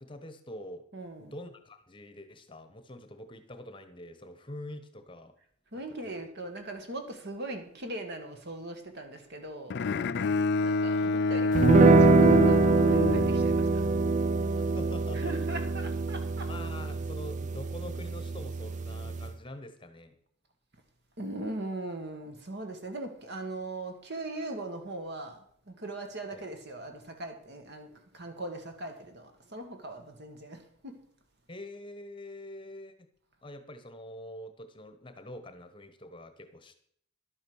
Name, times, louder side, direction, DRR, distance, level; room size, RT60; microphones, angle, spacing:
voice 1, 0.0-0.9 1.2-5.3 5.7-6.3 14.6-15.5 16.5-20.2 26.3-26.4 31.5-33.1 33.4-36.7, left 1 dB, 25° left, 9 dB, 1.0 m, -45 dB
voice 2, 0.9-1.3 5.7-9.8 10.6-13.7 15.1-16.5 21.2-31.0, right 2 dB, 55° right, 5 dB, 1.8 m, -40 dB
Bowed string instrument, 9.7-13.9, left 3 dB, 55° left, 0.4 m, -27 dB
sound 1, 11.6-19.3, right 3 dB, 35° right, 0.4 m, -24 dB
11.5 x 8.7 x 6.2 m, 0.63 s
head